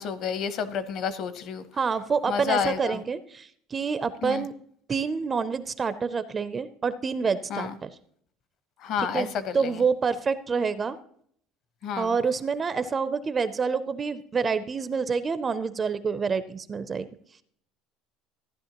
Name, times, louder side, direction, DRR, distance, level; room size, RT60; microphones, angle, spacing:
voice 1, 0.0-1.6 2.3-3.0 4.2-4.4 7.5-7.7 8.8-9.7 11.8-12.1, left 7 dB, 45° left, 13 dB, 0.7 m, -30 dB
voice 2, 1.7-4.5 4.9-7.9 9.0-11.0 12.0-17.1, right 5 dB, 20° right, 13 dB, 0.4 m, -27 dB
15.0 x 10.5 x 2.9 m, 0.65 s
cardioid pair, 170°, 0 cm